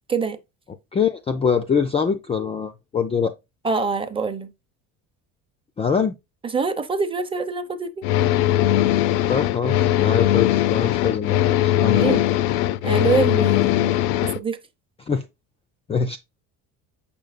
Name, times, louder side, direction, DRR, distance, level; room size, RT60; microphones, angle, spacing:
voice 1, 0.9-3.3 5.8-6.1 9.3-12.2 15.1-15.2 15.9-16.2, left 6 dB, 15° left, 0.4 m, -23 dB
voice 2, 3.6-4.5 6.5-8.1 12.0-12.2 12.8-13.9 14.2-14.6, right 5 dB, 15° right, 0.7 m, -25 dB
sound 1, 8.0-14.4, left 13 dB, 90° left, 0.5 m, -20 dB
7.2 x 5.3 x 2.5 m
cardioid pair, 135°, 35 cm